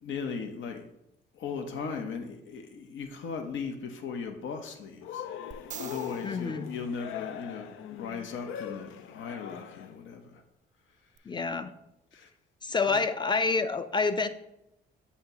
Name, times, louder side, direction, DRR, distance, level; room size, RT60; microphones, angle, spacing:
voice 1, 0.0-0.8 1.3-5.3 5.8-10.4 12.1-12.3 12.9-13.0, left 5 dB, 75° left, 6 dB, 0.9 m, -38 dB
Cheering, 5.0-10.0, left 10 dB, 90° left, 0.5 m, -41 dB
sound 1, 5.5-7.7 11.2-11.3, right 8 dB, 40° right, 0.4 m, -46 dB
voice 2, 6.2-6.7 11.3-11.7 12.6-14.3, left 4 dB, 20° left, 11 dB, 0.5 m, -28 dB
7.3 x 2.8 x 5.9 m, 0.84 s
cardioid pair, 90°, 20 cm